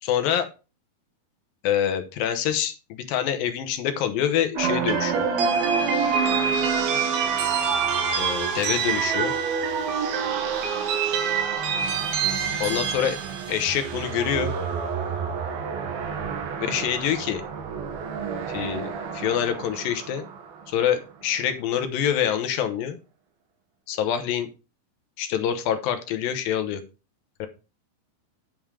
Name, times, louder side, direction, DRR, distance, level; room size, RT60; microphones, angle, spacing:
voice 1, 0.0-0.5 1.6-5.3 8.2-9.3 12.6-13.2 13.5-14.5 16.6-17.4 18.5-20.2 20.7-23.0 23.9-24.5 25.2-26.8 27.4-27.5, left 9 dB, 75° left, 8 dB, 2.6 m, -26 dB
sound 1, 4.6-20.8, right 6 dB, 75° right, 3.2 m, -26 dB
8.9 x 5.5 x 4.8 m, 0.31 s
omnidirectional pair, 4.4 m